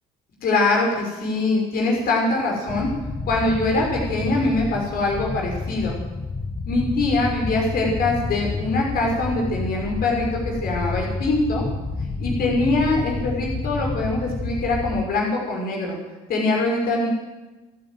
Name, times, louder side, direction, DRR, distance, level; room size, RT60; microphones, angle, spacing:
voice 1, 0.4-2.9 3.3-5.9 6.7-11.6 12.2-16.0 16.3-17.1, left 2 dB, 65° left, -1 dB, 6.0 m, -23 dB
sound 1, 2.7-15.0, left 3 dB, 20° left, 1.6 m, -29 dB
29.0 x 9.8 x 9.5 m, 1.2 s
cardioid pair, 110°, 17 cm